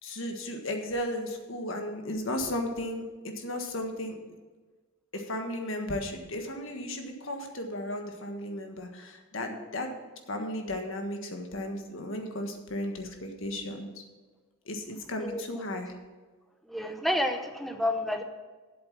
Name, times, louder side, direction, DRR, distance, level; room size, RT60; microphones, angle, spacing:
voice 1, 0.0-4.1 5.1-9.9 10.3-14.0 14.7-15.9, left 1 dB, 65° left, 4 dB, 1.5 m, -35 dB
voice 2, 16.7-18.2, left 1 dB, ahead, 6 dB, 0.7 m, -29 dB
8.0 x 7.7 x 7.2 m, 1.3 s
head